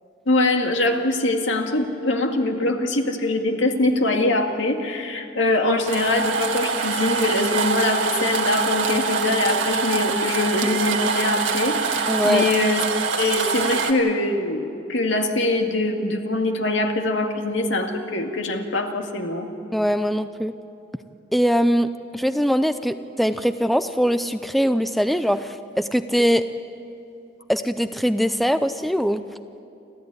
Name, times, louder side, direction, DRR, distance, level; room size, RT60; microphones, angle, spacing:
voice 1, 0.3-12.8 13.2-19.5, left 2 dB, 85° left, 4 dB, 2.1 m, -23 dB
sound 1, 5.9-13.9, right 4 dB, 90° right, 1.8 m, -24 dB
voice 2, 12.1-12.4 19.7-20.5 21.3-26.4 27.5-29.2, equal, ahead, 10 dB, 0.5 m, -22 dB
28.5 x 14.0 x 9.6 m, 2.7 s
head